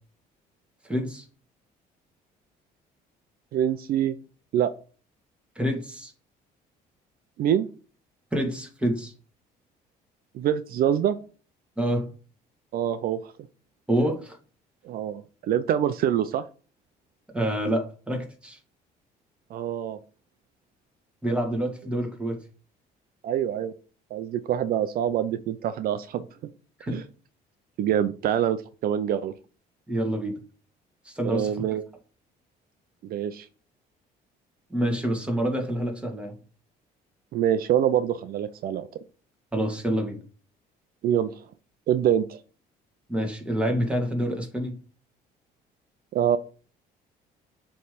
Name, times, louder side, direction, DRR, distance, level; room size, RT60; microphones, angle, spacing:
voice 1, 0.8-1.2 5.6-6.1 8.3-9.1 11.8-12.1 13.9-14.4 17.3-18.6 21.2-22.4 26.8-27.0 29.9-30.4 31.1-31.5 34.7-36.4 39.5-40.2 43.1-44.8, equal, 5° right, 2 dB, 1.9 m, -27 dB
voice 2, 3.5-4.2 4.5-4.7 7.4-7.7 10.3-11.2 12.7-13.3 14.8-16.4 19.5-20.0 23.2-23.7 24.1-26.3 26.9-27.0 27.8-29.3 31.2-31.8 33.0-33.5 37.3-38.9 41.0-41.4 41.9-42.4 46.1-46.4, right 10 dB, 60° right, 12 dB, 0.5 m, -25 dB
6.9 x 3.3 x 5.1 m, 0.38 s
cardioid pair, 110°, 17 cm